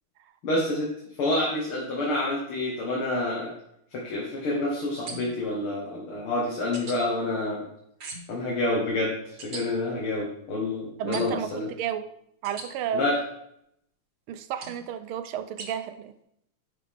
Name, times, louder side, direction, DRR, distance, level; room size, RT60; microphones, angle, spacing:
voice 1, 0.4-0.9 1.2-3.5 3.9-7.7 8.3-9.1 9.4-11.7 12.9-13.2, left 2 dB, 80° left, -4 dB, 2.5 m, -28 dB
sound 1, 5.1-5.5 6.7-7.0 8.0-8.4 9.4-9.6 11.1-11.5 12.4-12.7 14.6-14.8 15.6-15.7, right 3 dB, 45° right, 1.8 m, -39 dB
voice 2, 11.0-12.0 12.4-13.1 14.3-16.1, right 9 dB, 80° right, 11 dB, 1.5 m, -32 dB
11.0 x 5.7 x 3.7 m, 0.74 s
omnidirectional pair, 2.3 m